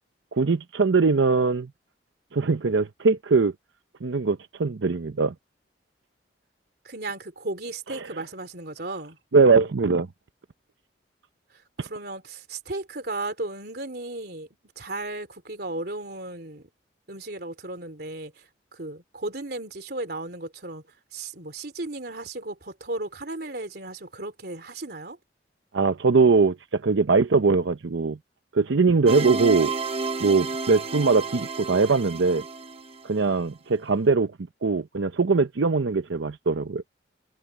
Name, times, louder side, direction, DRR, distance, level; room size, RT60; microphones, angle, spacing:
voice 1, 0.3-1.7 2.3-3.5 4.0-5.3 7.9-8.1 9.3-10.1 25.7-28.2 28.5-29.7 30.2-32.4 33.0-34.3 34.6-36.8, right 4 dB, 85° right, 0.7 m, -21 dB
voice 2, 6.8-9.2 11.8-14.5 14.7-16.7 17.1-18.4 18.7-20.8 21.1-25.2, right 2 dB, 55° right, 3.4 m, -35 dB
sound 1, 29.1-33.2, right 4 dB, 30° right, 0.9 m, -31 dB
head